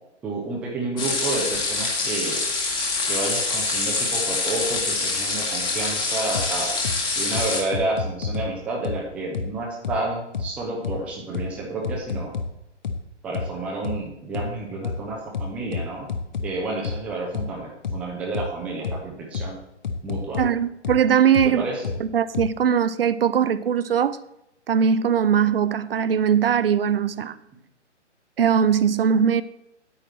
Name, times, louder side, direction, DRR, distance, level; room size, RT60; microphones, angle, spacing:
voice 1, 0.2-2.4 3.1-6.7 7.2-12.3 13.2-16.1 16.4-19.6 20.0-20.4 21.4-21.9, right 2 dB, 5° right, 0.6 m, -30 dB
sound 1, 1.0-7.6, left 3 dB, 10° left, 1.5 m, -25 dB
sound 2, 6.3-6.5 6.8-7.0 7.3-8.5 8.8-9.0 9.3-9.5 9.8-10.0 10.3-10.5 10.8-11.0 11.3-11.5 11.8-12.5 12.8-13.0 13.3-13.5 13.8-14.0 14.3-14.5 14.8-15.0 15.3-16.5 16.8-17.0 17.3-17.5 17.8-18.0 18.3-18.5 18.8-19.0 19.3-19.5 19.8-20.5 20.8-21.0 21.3-21.5 21.8-22.0 22.3-22.5, left 5 dB, 40° left, 0.9 m, -28 dB
voice 2, 20.4-21.6 22.0-24.2 24.7-27.4 28.4-29.4, right 8 dB, 50° right, 0.6 m, -20 dB
9.2 x 9.1 x 4.3 m
figure-of-eight pair, 130°, 36 cm